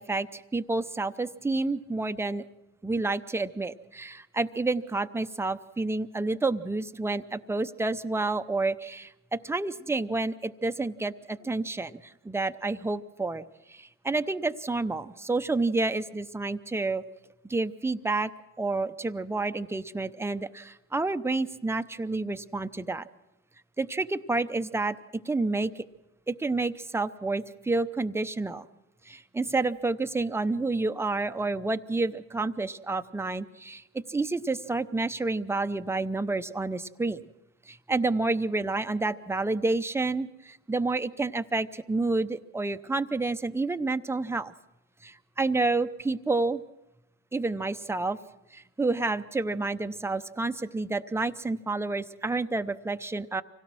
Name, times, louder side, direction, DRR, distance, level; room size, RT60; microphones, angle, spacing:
voice 1, 0.0-2.4 2.8-9.1 9.4-17.0 17.5-18.3 18.6-23.1 23.8-25.0 25.2-25.8 26.3-28.7 29.1-33.8 34.1-37.2 37.7-44.5 45.0-46.6 47.3-48.2 48.5-53.4, right 3 dB, 10° right, 10 dB, 0.7 m, -29 dB
25.0 x 17.0 x 6.2 m, 0.94 s
cardioid pair, 90°, 31 cm